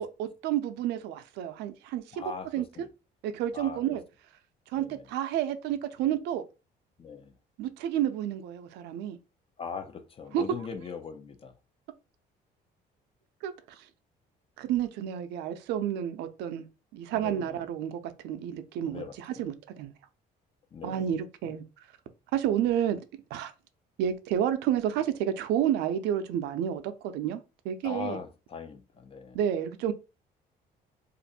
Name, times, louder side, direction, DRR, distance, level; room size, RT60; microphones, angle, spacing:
voice 1, 0.0-2.2 2.5-2.6 3.2-4.0 4.7-6.4 7.6-9.2 10.3-10.4 13.4-13.9 14.6-16.7 16.9-19.9 20.8-21.6 22.3-23.0 23.3-23.5 24.0-28.2 29.3-29.9, right 10 dB, 85° right, 0.5 m, -30 dB
voice 2, 2.1-2.9 3.5-3.8 4.8-5.0 7.0-7.3 9.6-11.5 17.1-17.6 18.9-19.2 20.7-21.0 27.8-29.4, left 5 dB, 35° left, 0.6 m, -40 dB
2.5 x 2.5 x 4.1 m
cardioid pair, 110°, 17 cm